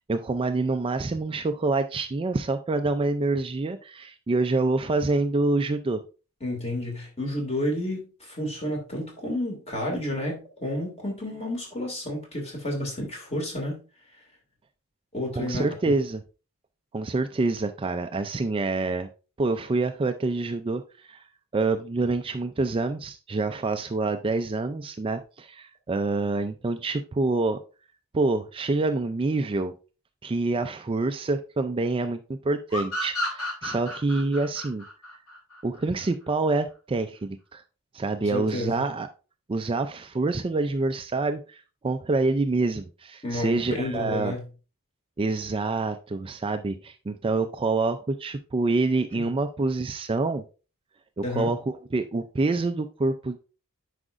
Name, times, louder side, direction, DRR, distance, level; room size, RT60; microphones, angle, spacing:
voice 1, 0.1-6.0 15.4-16.2 16.9-19.1 19.4-20.8 21.1-21.2 21.5-27.6 28.1-29.7 30.2-34.8 35.6-37.6 37.9-39.1 39.5-44.3 45.2-50.4 51.2-53.4, right 3 dB, 25° right, 8 dB, 0.4 m, -26 dB
voice 2, 6.4-13.8 15.1-15.7 38.2-38.8 43.2-44.4 49.1-49.3 51.2-51.5, left 1 dB, 30° left, 1 dB, 2.4 m, -31 dB
sound 1, 32.7-36.1, left 1 dB, 90° left, 2.3 m, -32 dB
9.8 x 5.0 x 2.5 m, 0.34 s
head